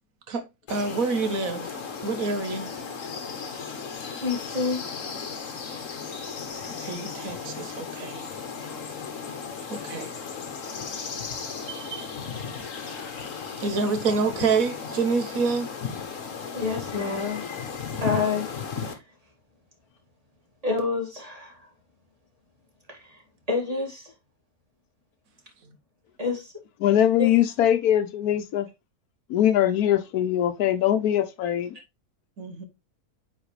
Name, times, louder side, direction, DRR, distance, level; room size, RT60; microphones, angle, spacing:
sound 1, 0.7-18.9, left 6 dB, 60° left, 1.5 m, -35 dB
voice 1, 0.7-1.7 2.0-2.7 6.6-8.2 9.7-10.1 11.7-12.1 13.6-15.7 32.4-32.7, right 4 dB, 70° right, 1.5 m, -27 dB
voice 2, 4.2-4.8 16.5-17.4 18.0-18.5 18.8-19.0 20.6-21.7 22.9-23.2 23.5-24.1 26.2-26.5 27.2-27.3, left 4 dB, 25° right, 2.1 m, -28 dB
voice 3, 26.8-28.7 29.3-31.8, left 11 dB, 90° left, 1.2 m, -22 dB
8.8 x 4.0 x 3.1 m
omnidirectional pair, 1.5 m